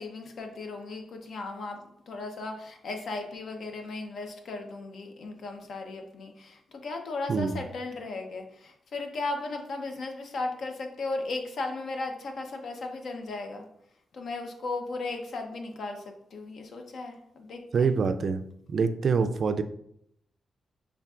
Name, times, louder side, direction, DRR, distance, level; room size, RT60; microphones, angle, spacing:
voice 1, 0.0-1.8 2.1-13.7 14.1-18.0, left 3 dB, 70° left, 4 dB, 0.7 m, -36 dB
voice 2, 17.7-18.4 18.7-19.6, right 5 dB, 55° right, 10 dB, 0.3 m, -25 dB
5.6 x 3.5 x 2.4 m, 0.72 s
cardioid pair, 115°, 0 cm